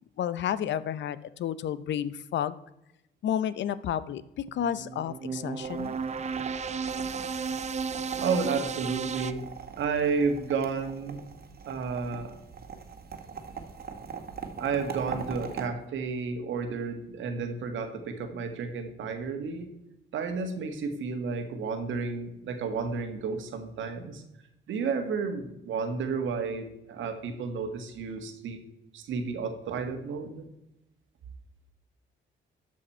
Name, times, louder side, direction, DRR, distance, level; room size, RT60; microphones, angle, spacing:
voice 1, 0.2-2.6 3.2-5.9, left 9 dB, 65° left, 16 dB, 0.7 m, -31 dB
sound 1, 4.5-9.3, right 5 dB, 35° right, 0.6 m, -33 dB
sound 2, 5.6-15.7, right 6 dB, 50° right, 1.8 m, -42 dB
voice 2, 8.2-9.5 9.8-11.2 11.7-12.4 14.6-19.7 20.1-24.2 24.7-28.6 28.9-30.5, right 5 dB, 75° right, 7 dB, 1.7 m, -31 dB
12.0 x 6.4 x 4.4 m, 0.88 s
cardioid pair, 90°, 20 cm